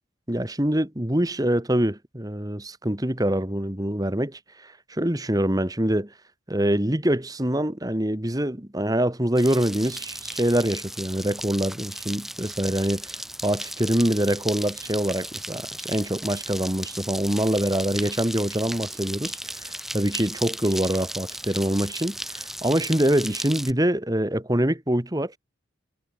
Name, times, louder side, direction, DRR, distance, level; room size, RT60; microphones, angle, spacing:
voice 1, 0.3-6.1 6.5-13.1 13.4-25.4, right 1 dB, 20° right, 1.6 m, -25 dB
sound 1, 9.4-23.7, right 1 dB, ahead, 6.2 m, -35 dB
head